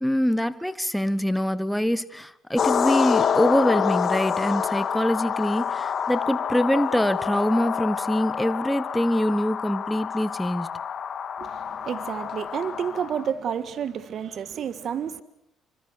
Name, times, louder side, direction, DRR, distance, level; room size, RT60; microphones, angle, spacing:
voice 1, 0.0-10.7, equal, 5° left, 1.3 m, -24 dB
sound 1, 2.6-13.3, left 7 dB, 50° left, 1.8 m, -27 dB
voice 2, 11.4-15.2, right 8 dB, 55° right, 1.6 m, -30 dB
27.5 x 25.0 x 6.4 m
supercardioid pair, 75°, 0 cm